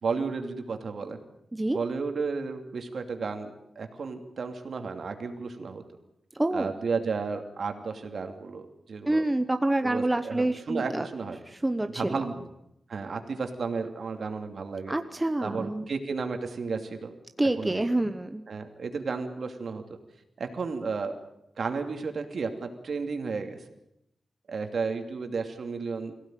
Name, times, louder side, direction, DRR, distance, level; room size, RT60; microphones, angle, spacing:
voice 1, 0.0-1.2 1.7-5.8 6.5-9.3 9.8-11.4 11.9-12.5 12.9-14.9 15.4-17.1 17.6-17.9 18.5-19.8 20.4-21.1 21.6-23.6 24.5-26.1, right 4 dB, 65° right, 5 dB, 2.7 m, -33 dB
voice 2, 6.3-6.7 9.1-11.1 11.6-12.2 14.9-15.8 17.4-18.4, right 1 dB, 15° right, 8 dB, 0.9 m, -27 dB
23.0 x 16.5 x 9.1 m, 0.82 s
wide cardioid pair, 140°, 0 cm